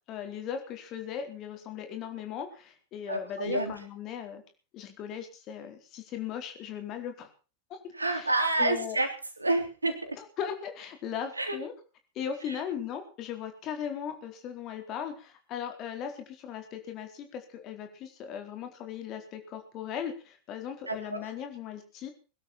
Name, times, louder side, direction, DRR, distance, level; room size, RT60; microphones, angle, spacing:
voice 1, 0.1-4.4 4.7-7.3 7.7-7.8 8.1-8.3 8.6-9.0 10.2-11.7 12.1-22.1, left 8 dB, 35° left, 6 dB, 4.2 m, -38 dB
voice 2, 3.1-3.8 7.9-9.1 9.4-10.2 11.3-11.6 12.5-12.6 20.9-21.3, right 2 dB, 80° right, 8 dB, 3.3 m, -29 dB
22.0 x 12.5 x 4.4 m, 0.36 s
figure-of-eight pair, 90°, 0 cm